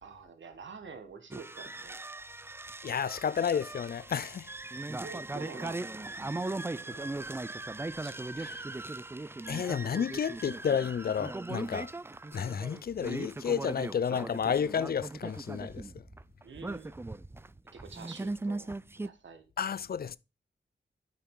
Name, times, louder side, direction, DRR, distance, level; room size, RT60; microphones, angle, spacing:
voice 1, 0.0-2.0 5.0-7.1 8.0-8.2 16.4-17.0 17.7-19.5, right 5 dB, 85° right, 1.4 m, -48 dB
sound 1, 1.3-19.1, right 2 dB, 15° right, 0.3 m, -39 dB
voice 2, 2.8-4.5 8.4-8.5 9.5-11.9 12.3-15.9 19.6-20.2, left 7 dB, 55° left, 0.4 m, -31 dB
8.2 x 5.8 x 3.7 m
cardioid pair, 60°, 19 cm